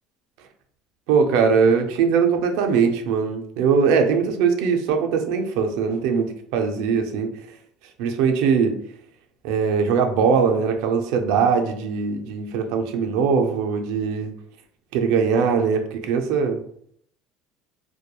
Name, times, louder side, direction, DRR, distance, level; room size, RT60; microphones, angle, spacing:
voice 1, 1.1-7.3 8.0-8.8 9.4-14.3 14.9-16.6, right 6 dB, 65° right, 5 dB, 0.4 m, -21 dB
2.9 x 2.1 x 2.2 m, 0.65 s
cardioid pair, 170°, 0 cm